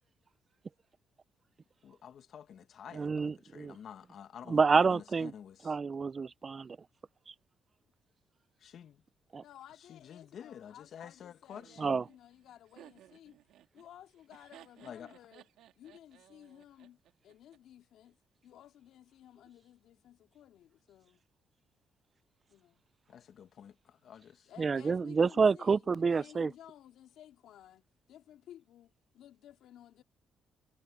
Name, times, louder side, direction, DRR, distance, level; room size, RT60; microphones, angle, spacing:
voice 1, 1.8-5.7 8.6-9.0 9.9-12.0 14.8-15.1 23.1-24.5, left 8 dB, 65° left, 1.5 m, -49 dB
voice 2, 2.9-3.8 4.5-5.3 5.6-6.8 9.3-9.4 11.8-12.0 24.6-26.5, right 5 dB, 35° right, 0.4 m, -28 dB
voice 3, 9.4-13.4 13.7-15.5 15.8-17.0 17.2-18.2 18.4-21.2 22.5-22.8 24.5-30.0, left 11 dB, 80° left, 2.4 m, -56 dB
Laughter, 11.5-17.6, right 12 dB, 85° right, 2.0 m, -59 dB
cardioid pair, 90°, 0 cm